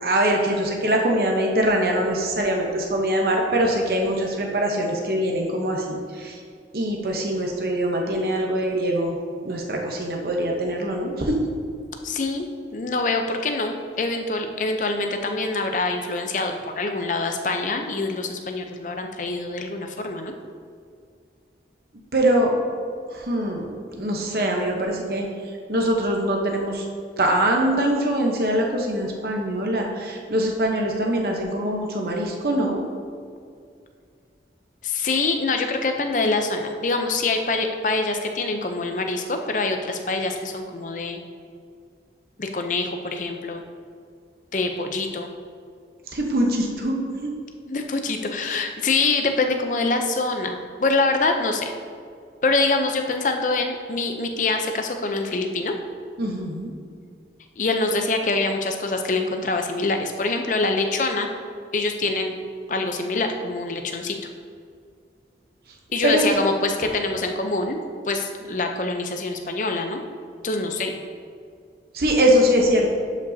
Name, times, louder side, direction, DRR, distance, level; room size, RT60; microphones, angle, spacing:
voice 1, 0.0-6.3 6.7-9.2 9.4-11.4 22.1-22.5 23.1-25.3 25.7-26.8 27.2-32.8 46.1-47.3 56.2-56.7 66.0-66.2 71.9-72.9, right 1 dB, 60° right, 0 dB, 0.9 m, -23 dB
voice 2, 12.0-20.3 34.8-41.2 42.4-43.6 44.5-45.3 47.7-51.7 52.4-55.7 57.6-61.3 61.7-62.3 62.7-64.2 65.9-67.8 68.1-70.0 70.4-70.9, left 3 dB, 45° left, 5 dB, 0.6 m, -25 dB
11.5 x 5.3 x 2.7 m, 2.2 s
head